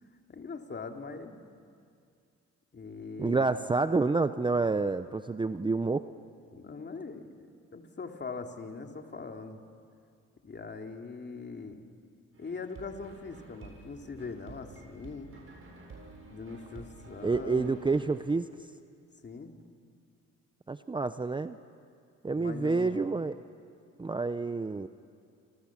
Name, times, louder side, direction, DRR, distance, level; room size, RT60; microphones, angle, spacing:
voice 1, 0.3-1.5 2.7-3.5 6.5-9.6 10.4-11.8 12.4-15.3 16.3-17.8 19.2-19.6 22.3-23.0, left 4 dB, 35° left, 4 dB, 2.6 m, -41 dB
voice 2, 3.2-6.0 17.2-18.5 20.7-21.6 22.2-23.3 24.0-24.9, right 3 dB, 15° right, 11 dB, 0.7 m, -28 dB
sound 1, 12.3-18.2, right 3 dB, 45° right, 7.8 m, -51 dB
29.0 x 26.0 x 7.3 m, 2.3 s
cardioid pair, 90°, 30 cm